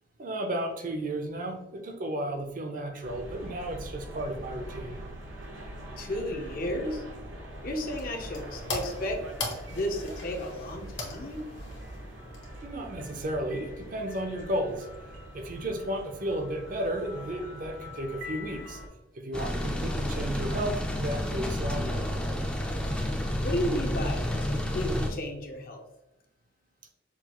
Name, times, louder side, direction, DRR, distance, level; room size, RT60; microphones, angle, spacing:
voice 1, 0.2-5.0 12.6-14.9 15.3-18.8 19.1-22.1, right 1 dB, 45° right, 4 dB, 0.6 m, -33 dB
sound 1, 3.0-18.9, equal, 85° right, 1.0 m, -43 dB
voice 2, 6.0-7.0 7.6-9.2 9.7-11.4 23.4-25.8, left 1 dB, 50° left, 2 dB, 0.7 m, -33 dB
sound 2, 7.5-12.9, left 2 dB, 65° left, 1.2 m, -40 dB
sound 3, 19.3-25.1, left 1 dB, 5° left, 0.4 m, -30 dB
5.8 x 2.3 x 2.9 m, 0.95 s
head